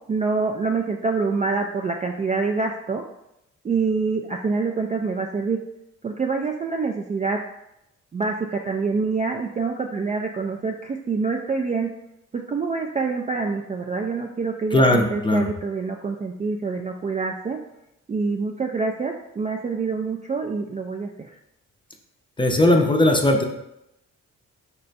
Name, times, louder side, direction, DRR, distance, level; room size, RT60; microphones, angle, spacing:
voice 1, 0.1-3.0 3.6-5.6 6.0-7.4 8.1-11.9 12.3-17.6 18.1-21.3, right 4 dB, 25° right, 2 dB, 0.3 m, -26 dB
voice 2, 14.7-15.5 22.4-23.5, left 1 dB, 15° left, 2 dB, 0.6 m, -18 dB
4.1 x 2.2 x 4.0 m, 0.84 s
supercardioid pair, 60°, 32 cm